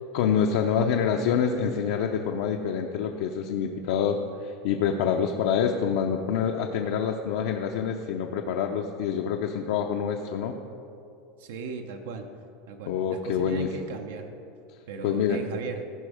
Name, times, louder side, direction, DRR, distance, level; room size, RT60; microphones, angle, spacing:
voice 1, 0.1-10.5 12.9-13.7 15.0-15.4, left 7 dB, 70° left, 3 dB, 0.6 m, -26 dB
voice 2, 11.4-12.3 12.7-14.3 14.9-15.8, right 5 dB, 85° right, 5 dB, 0.8 m, -37 dB
15.5 x 5.3 x 4.9 m, 2.7 s
supercardioid pair, 160°, 0 cm